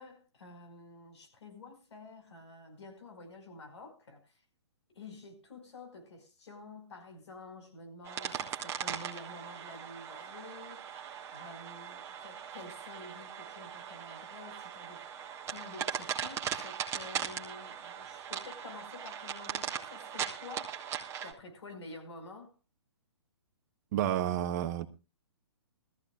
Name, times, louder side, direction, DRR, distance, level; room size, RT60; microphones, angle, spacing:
voice 1, 0.0-4.4 4.9-10.9 11.3-15.0 15.5-20.8 21.2-22.5, left 2 dB, 75° left, 5.3 m, -50 dB
sound 1, 8.0-21.3, right 8 dB, 20° right, 1.7 m, -39 dB
voice 2, 23.9-24.9, right 11 dB, 35° right, 1.1 m, -30 dB
20.5 x 14.5 x 2.4 m
hypercardioid pair, 145°, 15 cm